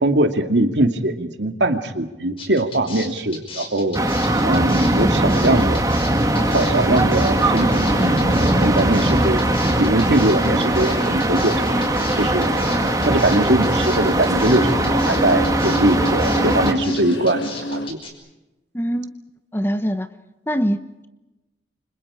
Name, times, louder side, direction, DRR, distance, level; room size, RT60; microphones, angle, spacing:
voice 1, 0.0-4.0 4.4-5.8 6.4-8.3 8.6-9.5 9.8-11.7 12.2-12.5 13.0-18.0, right 1 dB, 80° right, 6 dB, 2.5 m, -21 dB
sound 1, 2.4-18.1, left 3 dB, 30° left, 5.7 m, -36 dB
sound 2, 3.9-16.7, right 1 dB, 20° right, 1.8 m, -20 dB
sound 3, 6.3-17.9, left 1 dB, 85° left, 1.8 m, -30 dB
voice 2, 18.7-19.1 19.5-20.1 20.5-21.1, equal, 10° left, 10 dB, 1.1 m, -23 dB
29.5 x 25.5 x 5.1 m, 1.0 s
head